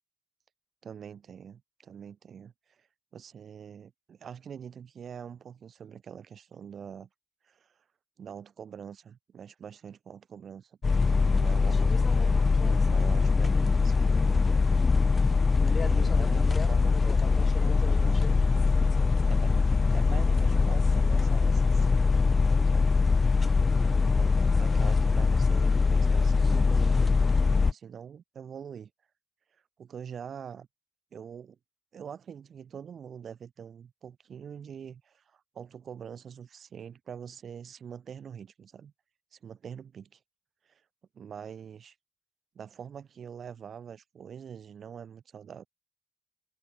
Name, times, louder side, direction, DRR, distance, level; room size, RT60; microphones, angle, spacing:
voice 1, 0.8-2.9 3.1-7.1 7.4-7.7 8.2-10.8 11.0-14.6 15.6-18.4 19.3-22.2 22.6-23.0 23.7-28.9 29.8-30.7 31.1-31.6 31.9-38.9 39.3-40.2 40.6-40.8 41.1-41.9 42.5-45.7, right 7 dB, 65° right, 5.2 m, -44 dB
sound 1, 10.8-27.7, left 4 dB, 40° left, 0.4 m, -23 dB
cardioid pair, 65°, 0 cm